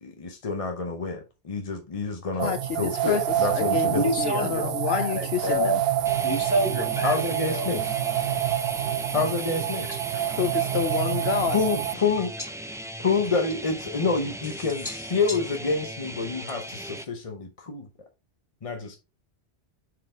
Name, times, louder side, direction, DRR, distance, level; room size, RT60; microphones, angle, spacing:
voice 1, 0.0-4.1 7.0-7.8 9.1-9.9 11.5-12.3 13.0-17.9 18.6-19.0, left 4 dB, 35° left, 0.8 m, -28 dB
voice 2, 2.4-3.2 3.5-5.8 10.3-11.6, left 8 dB, 70° left, 0.9 m, -29 dB
sound 1, 2.4-11.9, right 12 dB, 70° right, 0.8 m, -27 dB
voice 3, 3.9-5.8 6.2-7.7 9.9-10.0 14.8-15.0, left 1 dB, 20° left, 1.6 m, -28 dB
sound 2, 6.0-17.0, equal, 5° right, 0.5 m, -38 dB
7.2 x 4.9 x 3.3 m
omnidirectional pair, 1.1 m